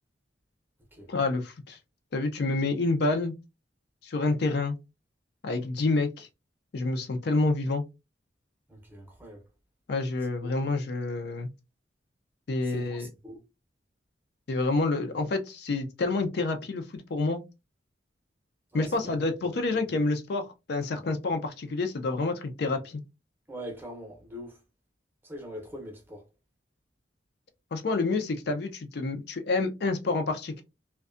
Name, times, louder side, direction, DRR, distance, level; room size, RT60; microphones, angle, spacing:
voice 1, 1.1-1.8 2.1-3.3 4.0-4.8 5.4-6.3 6.7-7.8 9.9-11.5 12.5-13.1 14.5-17.4 18.7-23.0 27.7-30.6, left 3 dB, 60° left, 0.4 m, -28 dB
voice 2, 8.7-9.4 10.4-10.5 12.6-13.4 18.7-19.2 23.5-24.6 25.2-26.2, equal, 10° right, 0.6 m, -42 dB
2.5 x 2.2 x 2.4 m
head